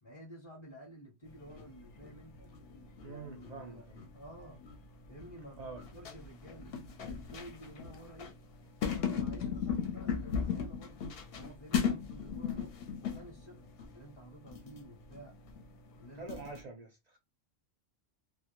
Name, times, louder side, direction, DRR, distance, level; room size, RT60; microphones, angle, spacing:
voice 1, 0.0-2.6 3.0-3.9 4.1-4.6 5.1-8.4 8.9-12.8 13.0-15.4 16.0-16.6, equal, 30° left, 0.7 m, -52 dB
sound 1, 1.3-16.6, left 7 dB, 60° left, 0.8 m, -38 dB
voice 2, 3.0-4.0 5.6-5.8 16.1-17.2, right 3 dB, 55° right, 0.4 m, -46 dB
2.1 x 2.1 x 2.9 m
omnidirectional pair, 1.2 m